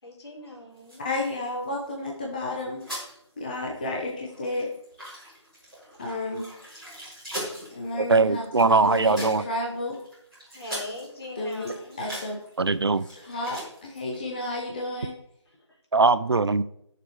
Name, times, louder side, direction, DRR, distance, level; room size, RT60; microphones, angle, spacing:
voice 1, 0.0-1.1 10.5-12.0 14.1-14.2 15.5-15.8, left 2 dB, 60° left, -1 dB, 3.7 m, -41 dB
sound 1, 0.8-2.2 2.5-3.2 3.5-3.6 3.9-14.2, equal, ahead, 4.8 m, -41 dB
voice 2, 1.0-2.8 3.4-4.7 6.0-6.5 7.7-10.0 11.4-11.7 12.0-12.4 13.2-15.1, left 2 dB, 15° left, -1 dB, 0.9 m, -31 dB
voice 3, 7.9-9.4 12.6-13.1 15.9-16.6, right 4 dB, 60° right, 15 dB, 0.5 m, -21 dB
20.0 x 6.8 x 3.2 m, 0.76 s
figure-of-eight pair, 170°, 15 cm